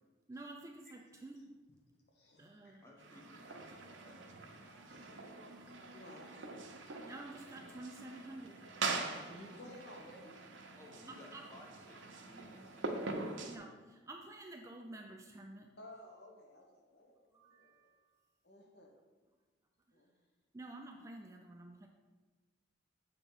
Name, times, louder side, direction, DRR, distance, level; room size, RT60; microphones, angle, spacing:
voice 1, 0.3-1.4 2.4-2.8 7.0-8.6 11.1-11.5 13.4-15.7 17.3-18.2 20.5-21.9, right 2 dB, 15° right, 2 dB, 0.3 m, -50 dB
voice 2, 2.1-2.9 4.9-5.1 5.9-6.4 6.7-6.9 9.3-11.1 15.8-17.7 18.4-18.9 19.9-20.2, left 1 dB, 60° left, 0 dB, 1.1 m, -56 dB
voice 3, 2.8-4.3 10.8-13.6, left 1 dB, 15° left, -3 dB, 1.0 m, -59 dB
sound 1, 3.0-13.6, right 3 dB, 85° right, 0.7 m, -44 dB
7.1 x 2.9 x 5.3 m, 1.3 s
head